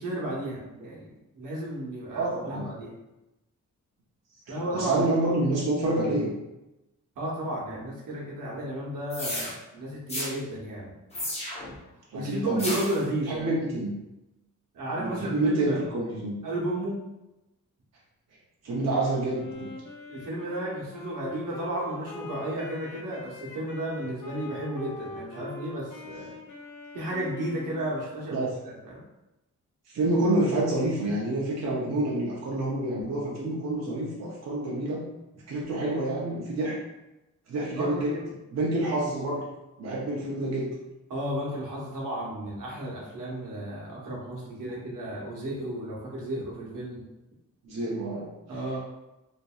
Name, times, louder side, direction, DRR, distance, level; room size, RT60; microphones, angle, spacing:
voice 1, 0.0-2.9 4.5-5.0 7.2-10.9 12.1-13.6 14.7-15.9 16.4-17.0 20.1-26.3 26.9-29.0 37.8-38.2 41.1-47.0 48.5-48.8, right 1 dB, 90° right, -4 dB, 0.9 m, -33 dB
voice 2, 2.1-2.7 4.5-6.3 12.1-12.6 13.3-13.9 15.0-16.4 18.6-19.7 28.3-28.5 29.9-35.1 35.5-36.8 37.5-38.1 38.5-39.5 39.8-40.7 44.6-44.8 47.6-48.3, right 2 dB, 60° right, -4 dB, 0.6 m, -28 dB
sound 1, 9.1-9.5 10.1-10.3 11.1-11.7 12.6-13.0, left 1 dB, 20° left, 0.7 m, -32 dB
Wind instrument woodwind instrument, 19.3-28.1, left 3 dB, 80° left, 0.6 m, -42 dB
2.8 x 2.6 x 2.3 m, 0.97 s
wide cardioid pair, 145°, 31 cm